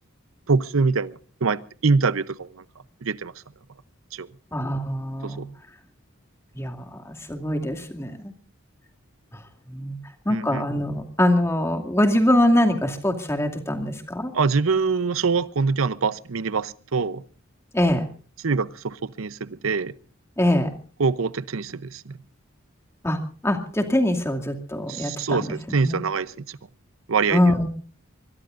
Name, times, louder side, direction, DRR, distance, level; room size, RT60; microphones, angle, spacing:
voice 1, 0.5-1.1 1.4-2.6 3.0-3.3 4.1-4.3 5.2-5.4 10.3-10.6 14.3-17.2 18.4-19.9 21.0-22.0 24.9-26.6 27.1-27.5, right 4 dB, 80° right, 17 dB, 0.7 m, -24 dB
voice 2, 4.5-5.4 6.5-8.3 9.7-10.0 10.3-14.3 17.7-18.0 20.4-20.7 23.0-23.2 23.4-25.5 25.8-26.0 27.3-27.7, left 1 dB, 15° left, 4 dB, 2.4 m, -23 dB
24.0 x 22.0 x 2.6 m, 0.40 s
head